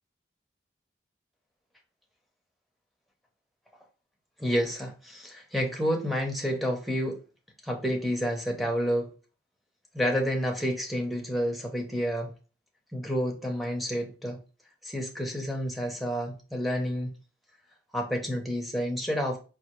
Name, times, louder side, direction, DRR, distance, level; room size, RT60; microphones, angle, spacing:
voice 1, 4.4-7.2 7.6-9.1 9.9-12.3 12.9-14.4 14.8-17.1 17.9-19.4, equal, ahead, 0 dB, 0.7 m, -29 dB
4.7 x 2.5 x 3.0 m, 0.35 s
head